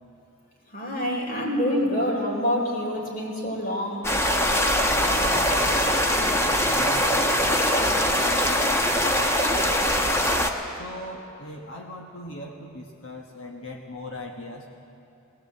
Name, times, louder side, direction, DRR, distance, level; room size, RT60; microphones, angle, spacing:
voice 1, 0.7-4.1, equal, 45° left, -1 dB, 4.2 m, -26 dB
sound 1, 4.0-10.5, equal, 15° left, 1.2 m, -22 dB
voice 2, 4.9-9.7 10.8-14.7, left 1 dB, 65° left, 1 dB, 1.6 m, -39 dB
21.0 x 18.5 x 7.8 m, 2.9 s
head